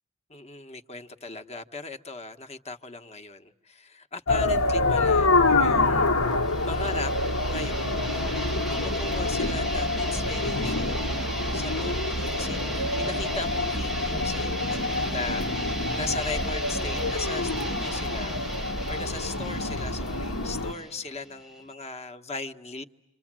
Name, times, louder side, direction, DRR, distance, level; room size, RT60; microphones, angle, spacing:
voice 1, 0.3-6.1 6.6-11.1 11.5-22.8, left 3 dB, 30° left, 7 dB, 1.0 m, -38 dB
sound 1, 4.3-20.7, left 2 dB, 70° left, 1.3 m, -26 dB
sound 2, 6.3-21.7, right 1 dB, ahead, 1.0 m, -36 dB
28.0 x 26.5 x 7.4 m, 0.91 s
head